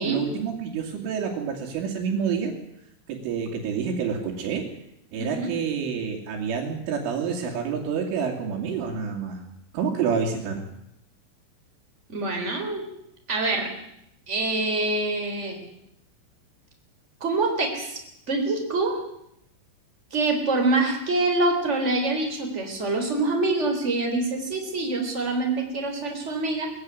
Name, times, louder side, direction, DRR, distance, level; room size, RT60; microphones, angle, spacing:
voice 1, 0.0-2.5 3.1-4.6 5.1-9.4 9.7-10.6, right 6 dB, 80° right, -2 dB, 5.0 m, -28 dB
voice 2, 5.2-5.5 12.1-12.9 13.3-13.7 14.3-15.6 17.2-18.0 18.3-19.0 20.1-26.7, right 2 dB, 15° right, 3 dB, 3.5 m, -25 dB
21.0 x 15.5 x 9.7 m, 0.79 s
omnidirectional pair, 5.5 m